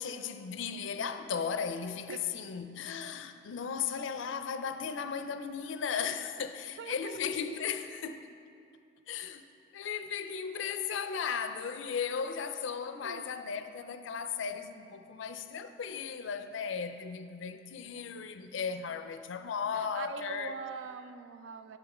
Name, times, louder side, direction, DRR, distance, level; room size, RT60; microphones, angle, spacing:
voice 1, 0.0-8.3 9.1-9.5 9.7-20.6, left 6 dB, 70° left, 0.4 m, -36 dB
voice 2, 6.8-7.2 13.0-13.4 19.7-21.8, right 5 dB, 70° right, 0.4 m, -43 dB
7.9 x 6.9 x 4.2 m
head